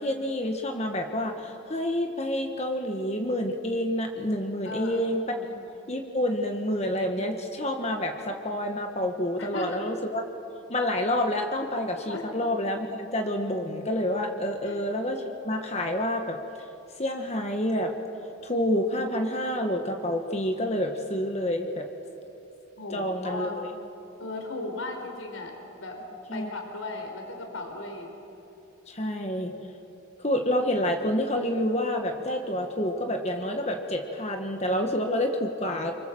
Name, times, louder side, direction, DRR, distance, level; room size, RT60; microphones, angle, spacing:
voice 1, 0.0-5.5 5.9-10.2 10.7-16.4 17.0-17.9 18.4-21.9 22.9-23.5 26.3-26.5 28.9-29.5 30.2-35.9, left 1 dB, 30° left, 4 dB, 1.5 m, -28 dB
voice 2, 4.6-5.0 5.3-5.6 9.4-9.8 12.1-12.4 14.6-14.8 22.8-23.6 24.2-26.0 26.3-28.1, left 2 dB, 85° left, 3 dB, 4.6 m, -36 dB
28.0 x 25.0 x 7.7 m, 2.8 s
head